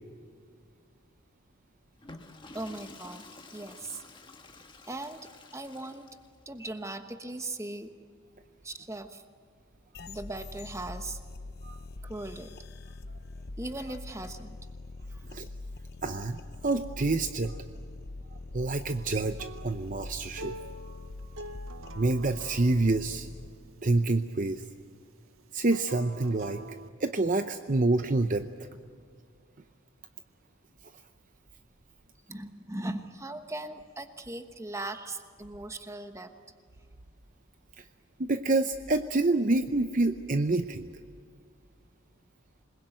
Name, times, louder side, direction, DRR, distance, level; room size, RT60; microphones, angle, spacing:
Water / Toilet flush, 1.9-6.4, left 3 dB, 20° left, 1.6 m, -50 dB
voice 1, 2.5-3.2 3.5-4.0 4.9-5.2 5.5-6.0 6.5-7.9 8.6-9.2 10.1-11.2 12.0-12.5 13.6-14.6 15.1-15.2 32.3-36.3, right 2 dB, 15° right, 8 dB, 1.2 m, -39 dB
sound 1, 9.9-23.5, left 2 dB, 50° left, 0.8 m, -43 dB
voice 2, 16.0-17.6 18.5-20.7 22.0-23.3 23.8-24.6 25.5-26.6 27.0-28.7 38.2-40.9, right 2 dB, 40° right, 9 dB, 0.7 m, -27 dB
Acoustic guitar, 18.9-24.1 25.6-26.9, right 2 dB, 75° right, 0.9 m, -46 dB
27.0 x 21.0 x 9.2 m, 2.1 s
head